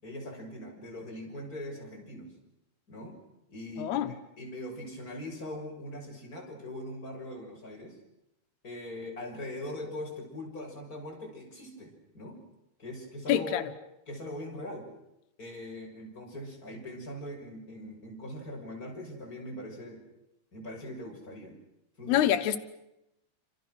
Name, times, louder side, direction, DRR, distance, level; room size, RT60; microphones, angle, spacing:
voice 1, 0.0-2.3 2.9-3.2 3.5-8.0 8.6-12.4 12.8-13.6 14.1-14.9 15.4-20.0 20.5-21.6 22.0-22.3, left 1 dB, 20° left, 0 dB, 7.0 m, -41 dB
voice 2, 3.8-4.1 13.3-13.6 22.1-22.6, left 11 dB, 90° left, 8 dB, 3.3 m, -25 dB
29.0 x 27.0 x 6.4 m, 0.86 s
omnidirectional pair, 4.5 m